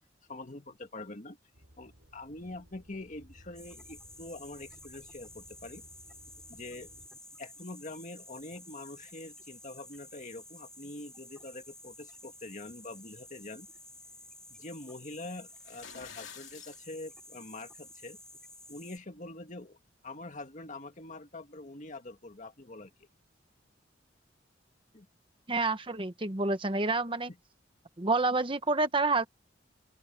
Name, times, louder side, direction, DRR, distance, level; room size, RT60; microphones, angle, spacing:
voice 1, 0.3-1.4 1.8-5.8 6.5-6.9 7.4-13.7 14.5-18.2 18.7-19.8 20.0-23.1 24.9-25.1, left 2 dB, 40° left, 1.9 m, -44 dB
sound 1, 1.5-7.1, equal, 75° right, 6.8 m, -58 dB
sound 2, 3.5-19.0, left 1 dB, 5° left, 3.8 m, -52 dB
sound 3, 15.6-16.8, left 8 dB, 75° left, 3.0 m, -48 dB
voice 2, 25.5-27.3 28.0-29.3, right 3 dB, 30° right, 1.1 m, -28 dB
open air
head